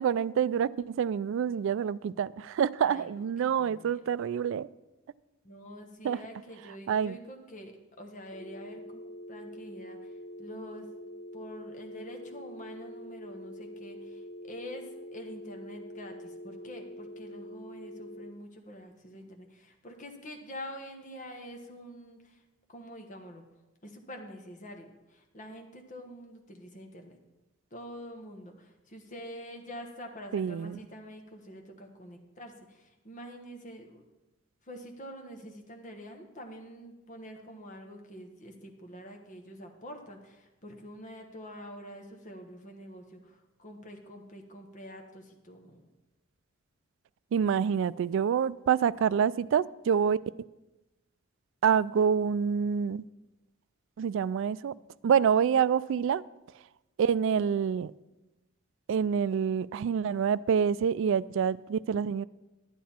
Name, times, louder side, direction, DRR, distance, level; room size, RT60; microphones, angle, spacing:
voice 1, 0.0-4.7 6.0-6.2 6.9-7.2 30.3-30.8 47.3-50.2 51.6-53.0 54.0-54.7 55.0-56.2 57.0-57.9 58.9-62.2, right 7 dB, 65° right, 18 dB, 0.3 m, -27 dB
voice 2, 2.8-4.0 5.4-10.8 11.3-22.4 22.7-23.4 23.8-27.2 27.7-34.0 34.6-45.9 47.5-47.8 48.4-48.5 48.8-49.1 55.3-55.9, equal, 40° left, 4 dB, 1.2 m, -46 dB
sound 1, 8.3-18.3, equal, 60° left, 0.7 m, -45 dB
11.5 x 9.3 x 4.3 m, 1.0 s
head